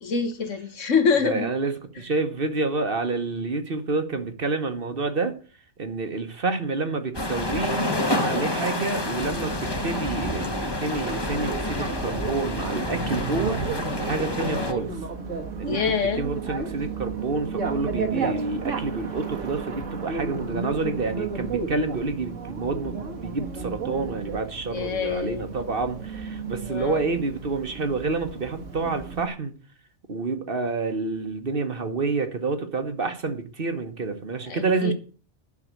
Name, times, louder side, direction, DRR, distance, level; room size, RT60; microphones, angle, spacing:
voice 1, 0.0-1.5 14.3-15.0 15.6-16.2 24.7-25.4 26.6-27.0 34.5-34.9, left 5 dB, 75° left, 1.7 m, -26 dB
voice 2, 1.2-5.3 5.8-14.9 15.6-15.8 16.2-29.5 30.1-34.9, right 3 dB, 50° right, 1.4 m, -28 dB
sound 1, 7.1-14.7, left 1 dB, 20° left, 1.3 m, -28 dB
Bicycle, 11.1-29.3, right 5 dB, 75° right, 1.9 m, -33 dB
11.0 x 5.8 x 8.3 m
omnidirectional pair, 1.3 m